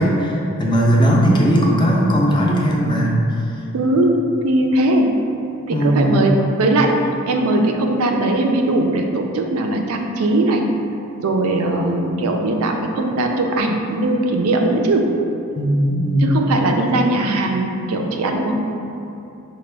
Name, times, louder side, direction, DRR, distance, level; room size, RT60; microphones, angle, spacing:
voice 1, 0.0-3.2 5.7-6.2 15.6-16.4, equal, 20° left, -2 dB, 0.4 m, -17 dB
voice 2, 3.7-4.1 4.4-5.1 5.7-7.0 7.3-10.6 11.2-15.1 16.2-18.6, right 2 dB, 75° right, 3 dB, 0.4 m, -19 dB
5.0 x 2.1 x 3.3 m, 2.8 s
head